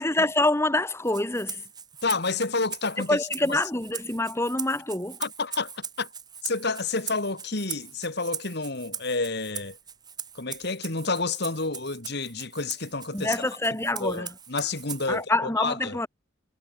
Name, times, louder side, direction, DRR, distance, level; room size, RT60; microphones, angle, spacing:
voice 1, 0.0-1.6 3.1-5.2 13.1-14.3 15.1-16.1, left 2 dB, 15° left, 1.6 m, -26 dB
Rattle (instrument), 1.0-15.2, right 7 dB, 20° right, 3.1 m, -40 dB
voice 2, 2.0-3.2 3.5-3.6 5.2-6.1 6.4-9.8 10.3-13.4 14.0-16.0, left 3 dB, 55° left, 2.3 m, -29 dB
head